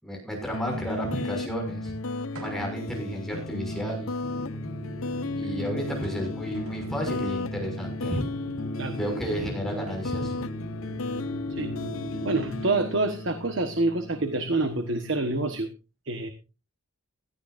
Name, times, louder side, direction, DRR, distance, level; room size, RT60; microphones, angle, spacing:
voice 1, 0.0-1.9 2.4-4.1 5.3-8.2 8.9-10.4, equal, ahead, 1 dB, 6.2 m, -32 dB
sound 1, 0.5-15.6, left 2 dB, 80° left, 0.8 m, -34 dB
sound 2, 2.4-3.0 3.6-3.7 5.5-5.6 5.9-7.0, right 2 dB, 85° right, 4.1 m, -47 dB
sound 3, 4.2-12.7, left 1 dB, 15° right, 5.0 m, -40 dB
voice 2, 12.2-15.7 16.1-16.3, right 2 dB, 60° right, 7 dB, 1.4 m, -27 dB
17.5 x 13.5 x 2.6 m, 0.31 s
head